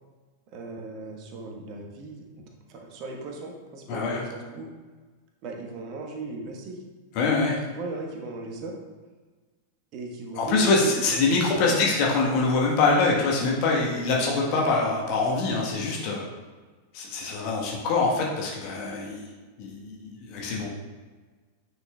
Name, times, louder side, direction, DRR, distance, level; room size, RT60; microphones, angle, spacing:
voice 1, 0.5-4.7 5.4-6.8 7.7-8.8 9.9-12.1, right 2 dB, 40° right, 1 dB, 1.2 m, -37 dB
voice 2, 3.9-4.3 7.1-7.6 10.4-16.2 16.9-19.2 19.6-20.7, left 3 dB, 45° left, -2 dB, 1.2 m, -24 dB
9.3 x 6.2 x 2.3 m, 1.4 s
figure-of-eight pair, 90°, 0 cm